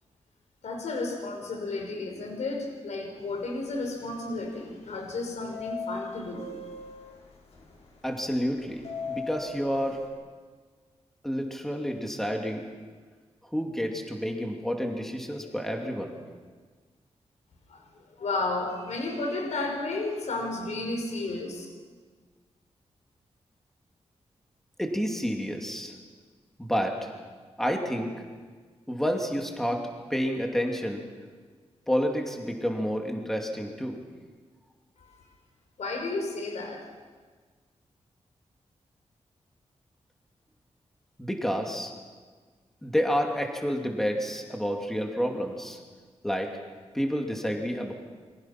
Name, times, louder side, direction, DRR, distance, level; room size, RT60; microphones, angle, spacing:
voice 1, 0.6-6.5 17.7-17.9 18.2-21.7 35.1-35.2 35.8-36.9, left 2 dB, 80° left, 2 dB, 5.1 m, -32 dB
sound 1, 3.4-3.7 4.0-4.8 5.5-10.1, left 4 dB, 65° left, 5.6 m, -39 dB
voice 2, 8.0-8.8 9.1-10.0 11.2-12.7 13.5-16.1 24.8-25.9 26.6-27.1 27.6-28.1 28.9-31.0 31.9-34.0 41.2-41.9 42.8-45.8 46.2-46.5 46.9-47.9, equal, 5° left, 2 dB, 2.4 m, -29 dB
28.5 x 24.0 x 5.8 m, 1.5 s
wide cardioid pair, 165°, 12 cm